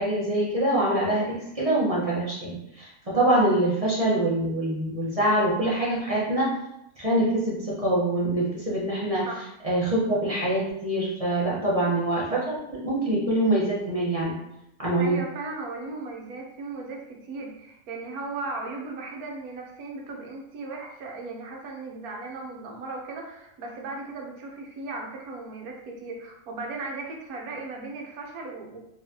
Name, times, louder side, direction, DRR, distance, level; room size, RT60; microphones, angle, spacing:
voice 1, 0.0-6.5 7.0-9.3 9.6-14.3 14.8-15.2, right 1 dB, 25° right, -7 dB, 0.8 m, -24 dB
voice 2, 15.0-28.8, right 3 dB, 70° right, 0 dB, 1.2 m, -37 dB
3.9 x 3.1 x 2.7 m, 0.82 s
omnidirectional pair, 1.7 m